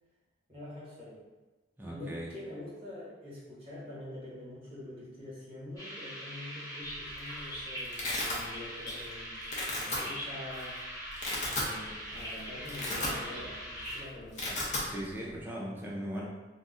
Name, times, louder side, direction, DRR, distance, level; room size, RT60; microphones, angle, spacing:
voice 1, 0.5-1.2 1.8-9.4 9.8-10.8 11.5-14.5, left 1 dB, 30° right, -9 dB, 1.1 m, -45 dB
voice 2, 1.8-2.3 14.5-14.6 14.8-16.3, equal, 10° right, -4 dB, 0.4 m, -38 dB
sound 1, 5.8-14.0, equal, 20° left, 0.9 m, -41 dB
Domestic sounds home sounds, 6.9-7.3 7.5-8.4 8.9-9.1 9.4-10.0 10.6-10.7 11.1-11.7 12.1-12.3 12.6-13.5 13.8-13.9 14.2-14.9, left 2 dB, 40° left, 0.6 m, -34 dB
2.4 x 2.1 x 3.6 m, 1.2 s
head